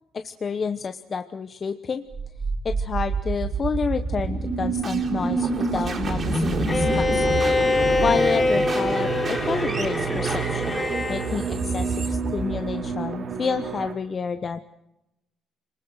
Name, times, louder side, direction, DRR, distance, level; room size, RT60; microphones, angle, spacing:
voice 1, 0.1-2.0 2.6-7.2 8.0-10.8 11.1-14.6, left 5 dB, 35° left, 8 dB, 1.0 m, -29 dB
sound 1, 2.1-13.2, right 3 dB, 40° right, 4.1 m, -27 dB
sound 2, 6.0-13.9, right 6 dB, 55° right, 3.1 m, -34 dB
Bowed string instrument, 6.7-11.3, left 3 dB, 20° left, 4.6 m, -24 dB
27.0 x 20.0 x 6.4 m, 0.90 s
cardioid pair, 105°, 0 cm